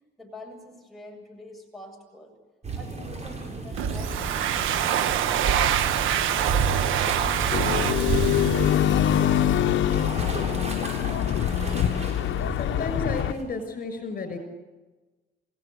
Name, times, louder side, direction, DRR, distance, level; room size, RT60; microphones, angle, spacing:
voice 1, 0.2-2.4 2.7-9.6, left 1 dB, ahead, 0 dB, 7.7 m, -47 dB
sound 1, 2.6-13.4, right 4 dB, 35° right, 7.8 m, -31 dB
Domestic sounds home sounds, 3.8-9.4, right 10 dB, 90° right, 1.3 m, -26 dB
sound 2, 7.5-13.3, left 11 dB, 75° left, 1.1 m, -24 dB
voice 2, 12.6-14.4, left 3 dB, 45° left, 7 dB, 6.2 m, -32 dB
28.0 x 17.5 x 8.1 m, 1.2 s
cardioid pair, 90°, 20 cm